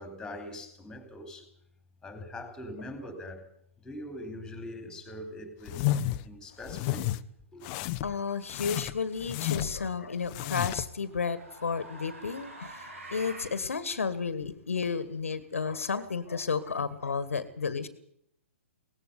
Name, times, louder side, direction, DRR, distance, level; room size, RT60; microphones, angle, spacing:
voice 1, 0.0-1.5 2.0-3.5 3.8-7.1 7.5-7.7, left 1 dB, 10° left, 4.0 m, -42 dB
sound 1, 5.7-6.2 6.6-7.2 7.6-8.1 8.5-9.8 10.2-10.9, left 14 dB, 35° left, 0.8 m, -31 dB
voice 2, 8.0-17.9, left 5 dB, 75° left, 1.6 m, -32 dB
sound 2, 9.5-9.9 10.9-13.6, right 1 dB, 75° right, 7.6 m, -45 dB
18.5 x 15.5 x 9.6 m
figure-of-eight pair, 120°, 7 cm